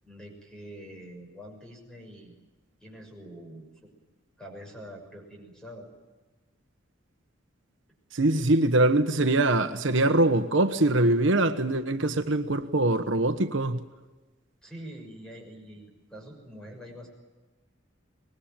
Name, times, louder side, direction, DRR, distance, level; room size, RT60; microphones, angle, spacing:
voice 1, 0.0-2.4 2.8-3.7 4.4-5.9 14.6-17.1, equal, 5° left, 6.3 m, -45 dB
voice 2, 8.1-13.8, right 2 dB, 70° right, 1.2 m, -23 dB
24.5 x 20.5 x 9.1 m
head